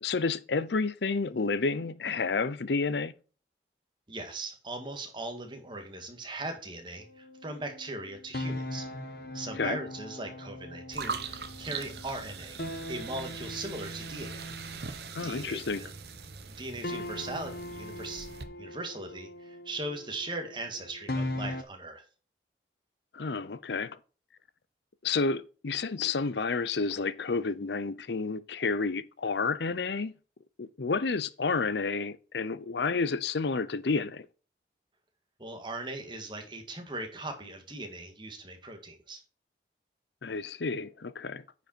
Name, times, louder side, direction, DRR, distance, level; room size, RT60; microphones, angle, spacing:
voice 1, 0.0-3.1 9.6-9.8 15.1-15.8 23.1-24.0 25.0-30.1 30.6-34.3 40.2-41.4, left 4 dB, 80° left, 0.6 m, -30 dB
voice 2, 4.1-8.9 9.3-12.6 12.9-15.9 16.6-18.3 18.6-22.0 35.4-39.2, right 2 dB, 25° right, 1.8 m, -39 dB
sound 1, 7.0-16.2 16.8-21.6, left 1 dB, 60° left, 1.1 m, -40 dB
sound 2, 10.9-18.4, right 5 dB, 70° right, 1.0 m, -41 dB
9.7 x 5.3 x 4.4 m
head